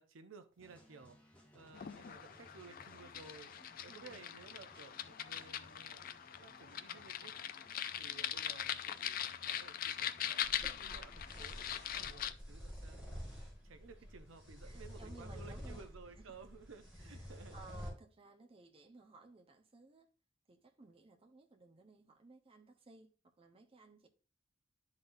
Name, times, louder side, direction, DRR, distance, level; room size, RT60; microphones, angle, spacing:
voice 1, 0.0-6.1 6.4-7.3 8.0-17.6, right 4 dB, 75° right, 0.6 m, -57 dB
sound 1, 0.6-12.0, equal, 5° left, 1.3 m, -63 dB
sound 2, 1.7-12.3, left 10 dB, 45° left, 0.4 m, -42 dB
voice 2, 3.9-4.3 14.6-15.8 16.3-16.4 17.0-20.1 20.5-23.1 23.4-24.1, right 3 dB, 30° right, 0.8 m, -58 dB
sound 3, 10.4-17.9, equal, 10° right, 3.1 m, -49 dB
11.5 x 4.0 x 2.6 m
head